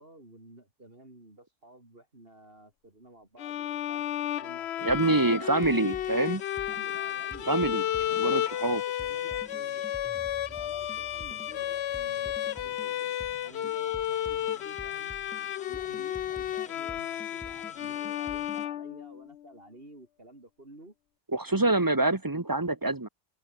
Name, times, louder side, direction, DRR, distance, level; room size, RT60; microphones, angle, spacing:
voice 1, 0.0-4.0 4.4-5.7 6.7-7.6 7.9-9.9 10.5-15.1 15.7-21.0 21.5-22.1, right 1 dB, 50° right, 5.2 m, -52 dB
Bowed string instrument, 3.4-19.4, left 11 dB, 70° left, 0.9 m, -32 dB
sound 1, 4.8-18.7, equal, 5° left, 2.1 m, -49 dB
voice 2, 4.8-6.4 7.5-7.8 8.2-8.8 21.3-23.1, right 2 dB, 20° right, 0.9 m, -26 dB
open air
omnidirectional pair, 1.2 m